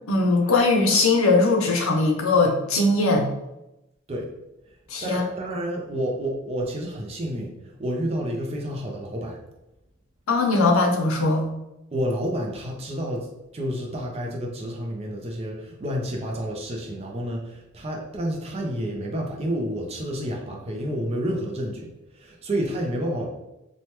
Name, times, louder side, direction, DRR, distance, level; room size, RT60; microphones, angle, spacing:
voice 1, 0.1-3.3 4.9-5.2 10.3-11.5, left 3 dB, 80° left, 1 dB, 0.6 m, -20 dB
voice 2, 5.0-9.4 11.9-13.3 13.5-21.9 22.1-23.3, equal, 30° right, -1 dB, 0.5 m, -29 dB
3.1 x 2.2 x 2.9 m, 0.92 s
head